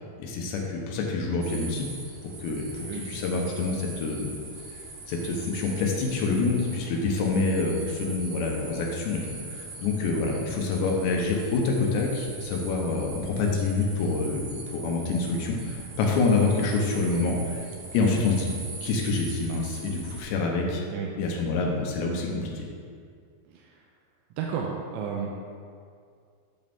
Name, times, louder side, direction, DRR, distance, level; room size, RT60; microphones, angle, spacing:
voice 1, 0.2-1.9 2.2-4.3 5.1-9.2 9.5-17.6 17.9-18.5 18.8-20.8 21.2-22.6, left 3 dB, 75° left, 0 dB, 3.0 m, -27 dB
sound 1, 1.4-20.2, right 3 dB, 65° right, 2.0 m, -42 dB
voice 2, 17.8-18.1 20.9-21.1 23.5-23.8 24.4-25.3, right 6 dB, 85° right, -1 dB, 3.0 m, -33 dB
8.8 x 6.4 x 3.6 m, 2.2 s
omnidirectional pair, 5.3 m